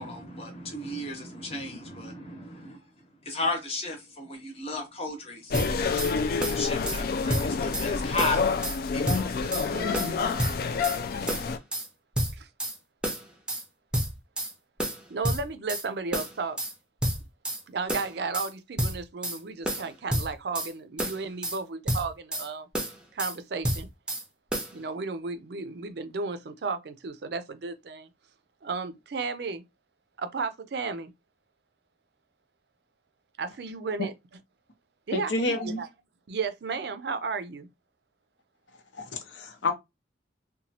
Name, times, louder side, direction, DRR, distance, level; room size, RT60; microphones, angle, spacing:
voice 1, 0.0-5.5 6.1-8.4 8.9-9.8 10.2-10.4, left 2 dB, 35° left, 0.9 m, -34 dB
sound 1, 5.5-11.6, left 5 dB, 55° left, 0.3 m, -28 dB
sound 2, 5.5-6.1 6.4-7.0 7.3-7.9 8.2-8.8 9.1-9.7 9.9-11.0 11.3-11.9 12.1-12.8 13.0-13.6 13.9-14.5 14.8-15.8 16.1-16.7 17.0-17.6 17.9-18.5 18.8-19.4 19.6-20.7 21.0-21.6 21.9-22.5 22.7-23.3 23.6-24.2 24.5-24.7, right 1 dB, 5° right, 0.5 m, -30 dB
voice 2, 9.7-10.3 12.3-12.5 15.1-16.6 17.7-22.7 23.1-23.9 24.7-28.1 28.6-29.6 30.2-31.1 33.4-34.1 35.1-35.9 36.3-37.7, right 4 dB, 60° right, 0.4 m, -34 dB
voice 3, 35.1-35.8 38.9-39.7, left 2 dB, 80° left, 0.7 m, -29 dB
2.9 x 2.2 x 2.7 m
head